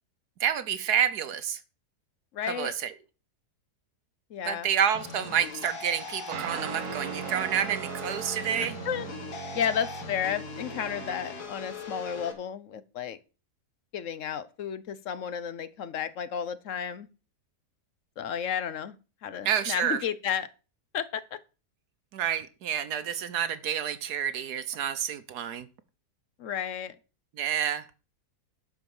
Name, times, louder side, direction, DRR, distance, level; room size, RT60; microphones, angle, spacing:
voice 1, 0.4-1.6 2.4-2.9 4.5-8.8 19.4-20.0 22.1-25.7 27.4-27.8, right 9 dB, 75° right, 1.4 m, -29 dB
voice 2, 2.3-2.7 4.3-4.7 8.6-9.1 9.5-13.2 13.9-17.1 18.2-19.0 19.2-20.5 20.9-21.4 26.4-26.9, left 8 dB, 60° left, 1.0 m, -32 dB
sound 1, 4.9-12.3, left 4 dB, 75° left, 2.3 m, -40 dB
sound 2, 6.3-11.5, right 9 dB, 60° right, 1.1 m, -39 dB
11.5 x 4.8 x 7.1 m
omnidirectional pair, 1.7 m